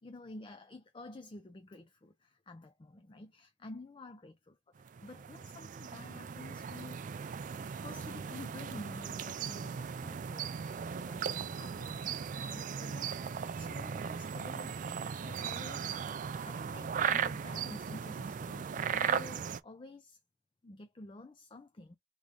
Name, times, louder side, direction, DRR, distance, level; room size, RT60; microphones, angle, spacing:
voice 1, 0.0-4.8 5.0-7.1 7.8-10.6 10.9-14.8 15.2-16.0 16.4-20.2 20.6-22.0, left 2 dB, 25° left, 0.4 m, -50 dB
sound 1, 4.8-19.6, right 7 dB, 45° right, 0.3 m, -37 dB
3.7 x 3.1 x 3.4 m
head